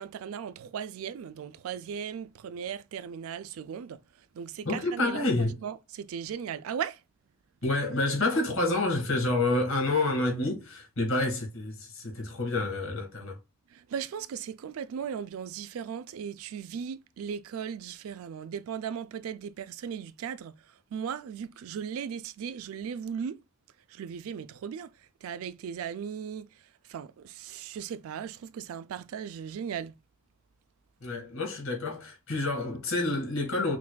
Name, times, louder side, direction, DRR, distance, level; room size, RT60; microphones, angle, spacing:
voice 1, 0.0-4.0 4.4-5.2 5.6-7.0 13.7-20.5 20.9-23.4 23.9-24.9 25.2-26.5 26.9-29.9, right 7 dB, 85° right, 0.3 m, -37 dB
voice 2, 4.6-5.6 7.6-13.4 31.0-33.8, left 2 dB, 70° left, 1.8 m, -28 dB
5.7 x 2.4 x 2.2 m
head